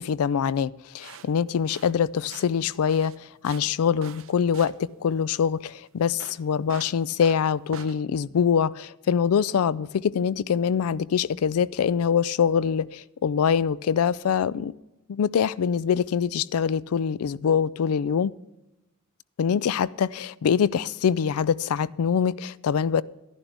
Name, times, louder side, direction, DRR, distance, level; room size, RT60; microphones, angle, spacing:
voice 1, 0.0-3.1 3.4-14.8 15.1-18.3 19.4-23.0, left 7 dB, 90° left, 0.4 m, -24 dB
sound 1, 1.0-8.0, right 6 dB, 65° right, 0.7 m, -45 dB
12.0 x 11.0 x 3.4 m
head